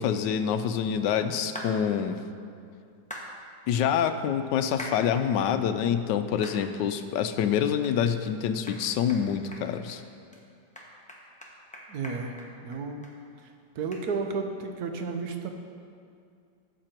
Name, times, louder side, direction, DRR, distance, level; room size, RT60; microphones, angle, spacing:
voice 1, 0.0-2.2 3.7-10.0, left 8 dB, 75° left, 9 dB, 1.2 m, -26 dB
sound 1, 1.6-1.7 3.1-3.3 4.8-5.0 5.5-5.6 6.4-6.6 7.1-7.2 7.8-8.0 8.3-8.4 8.7-8.8 9.1-9.2 9.5-10.0 10.3-10.4 10.8-13.1 13.4-13.5 13.9-14.0, equal, 5° left, 1.0 m, -41 dB
voice 2, 11.9-12.4 12.6-13.1 13.7-15.5, right 4 dB, 60° right, 5 dB, 1.3 m, -32 dB
13.5 x 7.7 x 4.4 m, 2.3 s
omnidirectional pair, 2.0 m